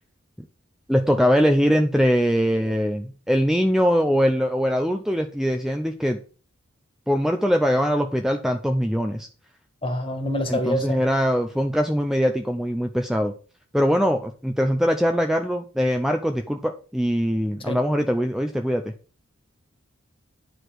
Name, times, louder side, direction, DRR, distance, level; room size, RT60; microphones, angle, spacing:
voice 1, 0.9-6.2 7.1-9.3 10.5-13.3 13.7-18.9, equal, ahead, 5 dB, 0.6 m, -22 dB
voice 2, 9.8-11.0 17.7-17.8, equal, 25° left, 6 dB, 1.9 m, -26 dB
9.8 x 5.0 x 6.1 m, 0.38 s
head